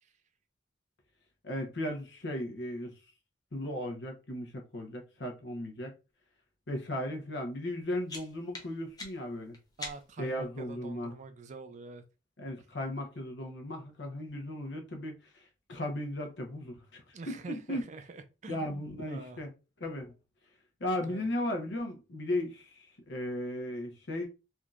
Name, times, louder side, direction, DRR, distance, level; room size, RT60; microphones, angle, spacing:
voice 1, 1.4-2.9 3.5-5.9 6.7-9.6 10.2-11.1 12.4-17.0 17.3-17.8 18.5-19.5 19.8-20.1 20.8-24.3, left 1 dB, 70° left, 0.9 m, -36 dB
sound 1, 7.6-10.3, left 2 dB, 20° left, 0.7 m, -46 dB
voice 2, 9.8-12.0 17.1-19.4 21.0-21.2, right 4 dB, 40° right, 0.4 m, -46 dB
3.5 x 2.7 x 2.4 m
head